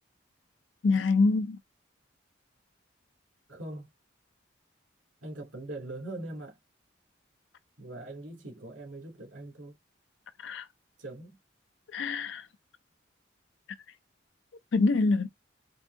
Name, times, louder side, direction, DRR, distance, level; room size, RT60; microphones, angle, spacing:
voice 1, 0.8-1.6 10.4-10.6 11.9-12.4 14.7-15.3, left 3 dB, 75° left, 0.5 m, -25 dB
voice 2, 3.5-3.9 5.2-6.6 7.8-9.8 11.0-11.4, right 2 dB, 90° right, 2.2 m, -41 dB
4.5 x 2.7 x 2.5 m
head